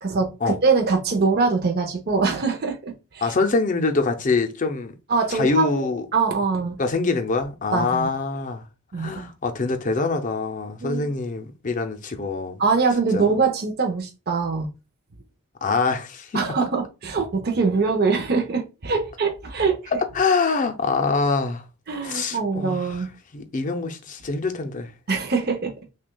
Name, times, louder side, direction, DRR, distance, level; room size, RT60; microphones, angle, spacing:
voice 1, 0.0-3.3 5.1-6.8 7.7-8.1 8.9-9.1 10.8-11.1 12.6-14.7 16.3-19.8 21.9-23.1 25.1-25.7, right 4 dB, 45° right, 0.6 m, -23 dB
voice 2, 3.2-4.9 5.3-6.1 6.8-8.6 8.9-12.6 13.1-13.3 15.6-16.4 20.1-21.6 22.0-23.0 23.3-24.9, left 4 dB, 35° left, 0.5 m, -24 dB
6.0 x 2.3 x 2.2 m
head